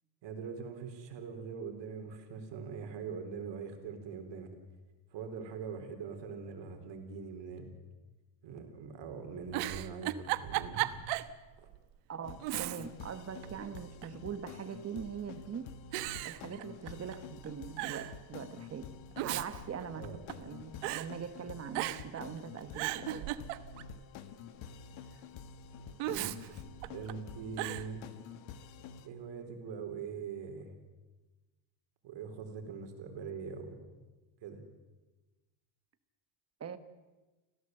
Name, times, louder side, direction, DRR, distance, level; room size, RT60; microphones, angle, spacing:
voice 1, 0.2-4.5 5.1-7.7 8.4-10.9 11.6-11.7 19.9-20.2 26.0-26.4 26.9-28.1 29.0-30.7 32.0-33.9 34.4-34.6, right 5 dB, 55° right, 5 dB, 4.2 m, -42 dB
Giggle, 9.4-11.3 11.7-11.8 12.4-13.1 13.4-14.2 15.0-15.4 15.9-17.2 17.4-17.5 17.8-18.1 18.9-20.5 20.8-21.1 21.7-22.2 22.6-24.0 26.0-27.1 27.6-27.9, right 16 dB, 90° right, 1.2 m, -36 dB
voice 2, 12.1-15.7 16.2-18.8 19.2-20.1 20.4-23.3 36.6-36.8, right 7 dB, 30° right, 11 dB, 1.5 m, -42 dB
sound 1, 12.2-29.1, left 7 dB, 65° left, 1.8 m, -49 dB
26.0 x 16.5 x 7.9 m, 1.2 s
cardioid pair, 140°, 50 cm